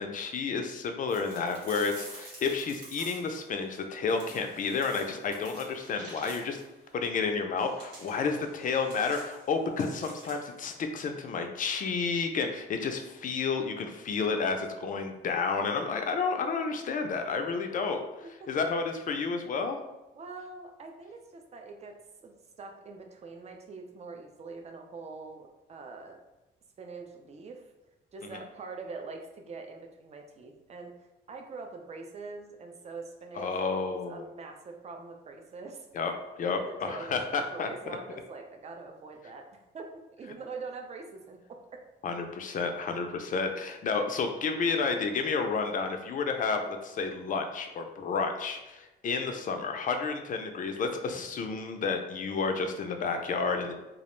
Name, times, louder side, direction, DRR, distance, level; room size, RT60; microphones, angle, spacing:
voice 1, 0.0-6.6 6.9-19.8 28.3-28.4 33.4-34.2 35.9-36.1 36.4-38.0 42.0-53.7, left 4 dB, 40° left, 5 dB, 0.4 m, -31 dB
sound 1, 1.1-3.4 4.1-6.7 7.6-10.6, right 1 dB, 70° right, 1.0 m, -49 dB
voice 2, 20.1-21.9 22.2-26.2 26.8-27.6 28.1-30.9 31.3-33.5 33.9-35.9 36.5-39.5 39.7-41.4 41.7-41.8, right 4 dB, 35° right, 3 dB, 0.4 m, -44 dB
2.3 x 2.0 x 3.0 m, 1.0 s
cardioid pair, 90°, 20 cm